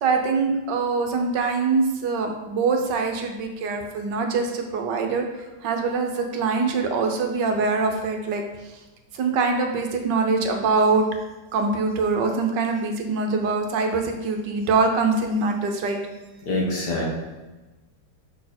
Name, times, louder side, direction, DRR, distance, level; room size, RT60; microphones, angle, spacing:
voice 1, 0.0-5.3 5.6-8.4 9.1-11.0 11.5-16.0, right 4 dB, 70° right, 4 dB, 1.3 m, -23 dB
voice 2, 16.4-17.1, left 1 dB, 55° left, -3 dB, 1.9 m, -25 dB
6.5 x 4.4 x 4.2 m, 1.1 s
omnidirectional pair, 2.2 m